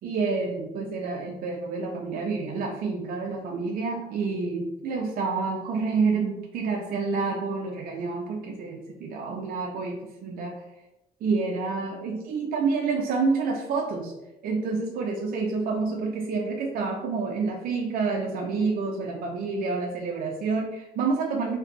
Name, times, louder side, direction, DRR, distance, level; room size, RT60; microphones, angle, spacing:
voice 1, 0.0-10.6 11.2-14.1 14.4-21.6, right 4 dB, 60° right, 0 dB, 0.6 m, -28 dB
4.6 x 2.9 x 3.2 m, 0.96 s
cardioid pair, 110°, 17 cm